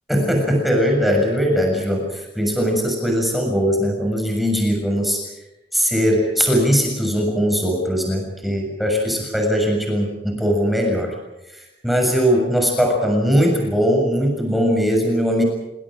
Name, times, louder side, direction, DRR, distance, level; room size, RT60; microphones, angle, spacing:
voice 1, 0.1-5.2 5.7-11.1 11.5-15.4, equal, ahead, 1 dB, 6.9 m, -20 dB
28.0 x 26.5 x 5.1 m, 0.98 s
head